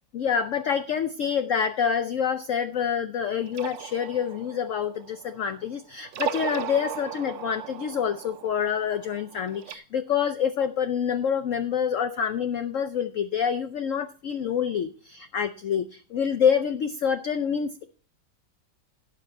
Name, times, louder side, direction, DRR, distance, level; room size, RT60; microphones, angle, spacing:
voice 1, 0.1-17.8, left 7 dB, 65° left, 9 dB, 0.8 m, -27 dB
sound 1, 3.4-5.6 6.0-9.7, right 11 dB, 90° right, 1.5 m, -37 dB
17.0 x 6.6 x 4.3 m, 0.40 s
omnidirectional pair, 2.0 m